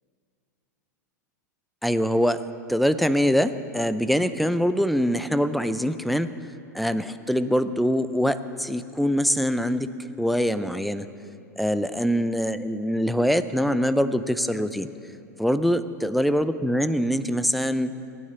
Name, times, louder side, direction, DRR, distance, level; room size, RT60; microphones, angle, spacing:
voice 1, 1.8-2.4 2.7-6.3 6.7-9.9 10.2-11.1 11.6-14.9 15.4-18.0, equal, ahead, 12 dB, 0.5 m, -23 dB
18.0 x 9.5 x 6.9 m, 2.7 s
hypercardioid pair, 95°, 9 cm